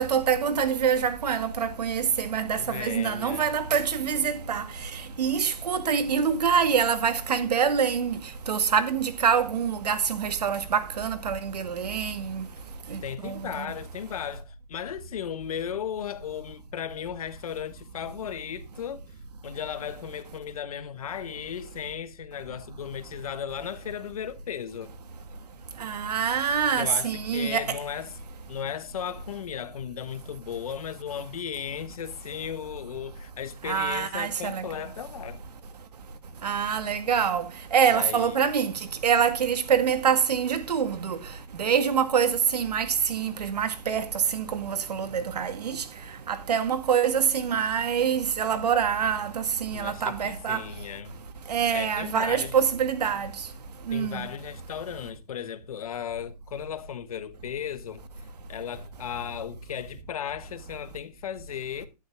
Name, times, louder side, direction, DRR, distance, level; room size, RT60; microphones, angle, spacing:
voice 1, 0.0-4.7 5.2-8.2 8.5-12.4 12.9-13.7 25.8-27.6 33.7-34.6 36.4-37.4 37.7-38.7 39.0-41.2 41.5-44.0 44.3-45.8 46.3-50.6 51.5-53.3 53.9-54.3, right 7 dB, 75° right, 2.0 m, -25 dB
voice 2, 2.6-3.5 13.0-19.1 19.4-24.9 26.8-28.2 28.5-35.4 37.9-38.4 49.7-51.2 51.7-52.5 53.9-61.9, left 9 dB, 60° left, 1.3 m, -36 dB
11.5 x 11.5 x 3.4 m
hypercardioid pair, 170°, 21 cm